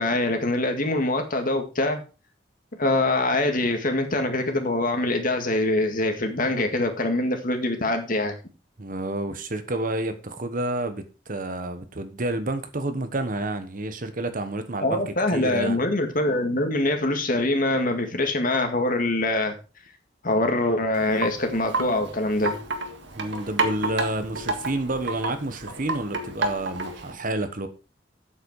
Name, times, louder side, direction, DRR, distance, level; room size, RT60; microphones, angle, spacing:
voice 1, 0.0-2.0 2.8-8.4 14.8-19.6 20.2-22.6, left 2 dB, 50° left, 2.0 m, -24 dB
voice 2, 8.8-15.8 23.1-27.7, right 1 dB, 50° right, 1.2 m, -29 dB
Wind chime, 20.9-27.1, right 3 dB, 75° right, 1.7 m, -31 dB
8.4 x 8.1 x 4.8 m
head